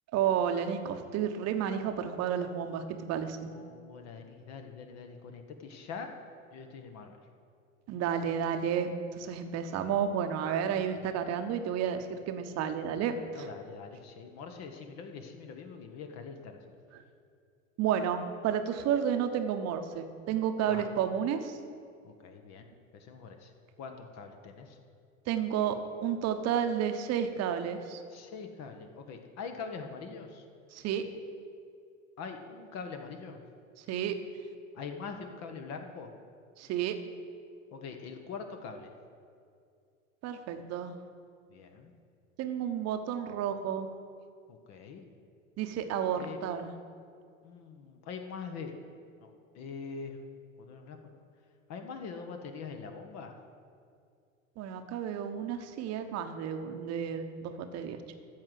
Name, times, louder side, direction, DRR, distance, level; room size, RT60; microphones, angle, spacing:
voice 1, 0.1-3.5 7.9-13.5 16.9-17.0 17.8-21.6 25.3-28.0 30.7-31.0 33.8-34.1 36.6-37.0 40.2-41.0 42.4-43.9 45.6-46.7 54.6-58.0, right 8 dB, 40° right, 7 dB, 1.0 m, -31 dB
voice 2, 3.5-6.1 6.5-7.2 12.9-16.6 20.7-21.0 22.0-22.6 22.9-23.5 23.8-24.8 28.1-30.5 32.2-33.4 34.7-36.1 37.7-38.9 41.5-41.9 44.5-45.0 46.2-46.4 47.4-48.7 49.2-50.2 50.6-51.0 51.7-53.3, left 5 dB, 40° left, 5 dB, 1.2 m, -43 dB
13.5 x 4.8 x 7.8 m, 2.3 s
figure-of-eight pair, 80°, 40 cm